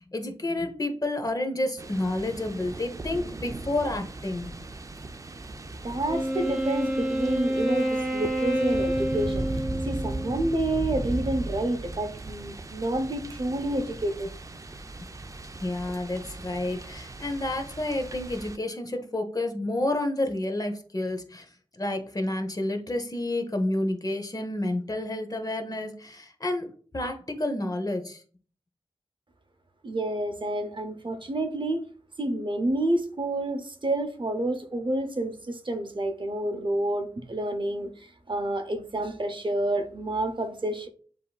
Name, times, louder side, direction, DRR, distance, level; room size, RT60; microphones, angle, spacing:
voice 1, 0.0-4.5 9.7-9.8 15.6-21.4 21.8-28.2, left 1 dB, 35° left, 5 dB, 0.9 m, -30 dB
sound 1, 1.8-18.6, right 2 dB, 30° right, 0.4 m, -38 dB
voice 2, 5.8-9.4 9.9-14.3 29.8-31.8 32.2-40.9, right 1 dB, 45° right, 6 dB, 0.7 m, -29 dB
Wind instrument woodwind instrument, 6.1-10.6, equal, 5° right, 1.1 m, -28 dB
7.2 x 2.7 x 2.3 m, 0.43 s
cardioid pair, 45°, 11 cm